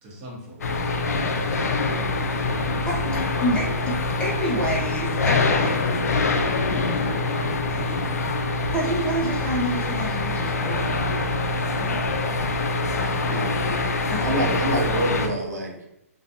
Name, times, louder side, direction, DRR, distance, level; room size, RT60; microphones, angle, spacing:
voice 1, 0.0-2.1 6.6-8.4 11.6-12.1, equal, 30° right, -2 dB, 0.8 m, -40 dB
sound 1, 0.6-15.3, left 3 dB, 85° left, 0.4 m, -24 dB
voice 2, 2.8-3.9 4.2-5.9 8.7-11.7 13.0-13.5 14.1-14.6, equal, 10° left, -4 dB, 0.5 m, -29 dB
voice 3, 13.3-13.6 14.2-15.9, right 1 dB, 90° right, 1 dB, 0.6 m, -27 dB
2.4 x 2.2 x 2.6 m, 0.85 s
hypercardioid pair, 135°, 8 cm